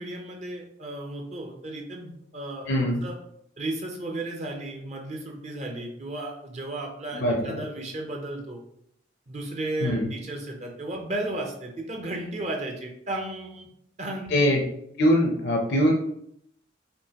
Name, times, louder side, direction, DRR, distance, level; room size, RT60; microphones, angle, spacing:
voice 1, 0.0-2.7 3.0-3.2 3.6-8.6 9.3-13.7 14.0-14.4, right 1 dB, 35° right, 1 dB, 0.6 m, -34 dB
voice 2, 2.7-3.0 7.1-7.6 9.8-10.1 14.3-14.6 15.0-15.9, equal, 60° left, 0 dB, 0.6 m, -22 dB
5.2 x 2.6 x 2.9 m, 0.73 s
head